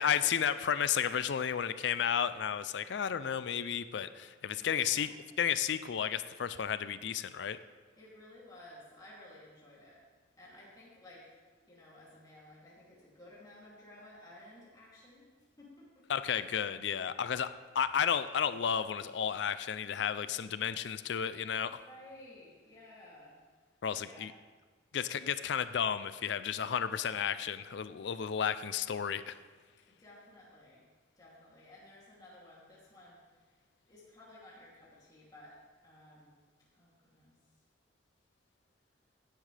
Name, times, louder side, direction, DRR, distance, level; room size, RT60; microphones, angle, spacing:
voice 1, 0.0-7.6 16.1-21.8 23.8-24.3 24.9-29.3, left 8 dB, 60° left, 13 dB, 0.4 m, -32 dB
voice 2, 4.5-5.3 8.0-10.0 10.4-11.4 11.7-15.2 15.6-16.1 21.8-23.3 24.0-24.3 29.9-30.8 31.2-33.6 33.9-35.6 35.8-36.4 36.7-37.3, left 1 dB, 20° left, -7 dB, 2.7 m, -55 dB
16.5 x 10.0 x 3.3 m, 1.4 s
head